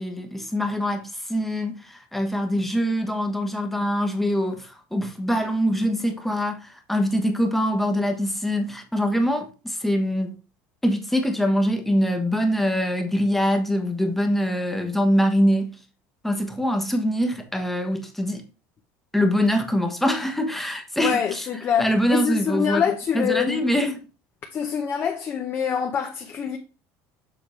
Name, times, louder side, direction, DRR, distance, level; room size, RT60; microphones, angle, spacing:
voice 1, 0.0-10.3 10.8-15.7 16.2-18.4 19.1-21.5 21.8-22.8 23.1-24.0, equal, 5° left, 1.1 m, -24 dB
voice 2, 21.0-23.8 24.5-26.6, left 8 dB, 30° left, 0.8 m, -25 dB
7.0 x 3.6 x 4.4 m
cardioid pair, 145°, 7 cm